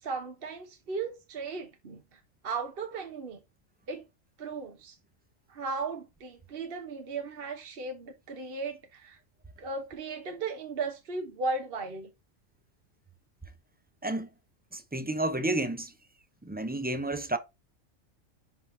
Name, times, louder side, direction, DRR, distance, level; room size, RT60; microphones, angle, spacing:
voice 1, 0.0-3.4 3.9-4.0 4.4-5.0 5.5-9.2 9.6-12.1, right 4 dB, 50° right, 1.1 m, -36 dB
voice 2, 14.7-15.9 16.4-17.4, right 1 dB, 15° right, 0.3 m, -31 dB
10.5 x 3.9 x 2.7 m
omnidirectional pair, 1.3 m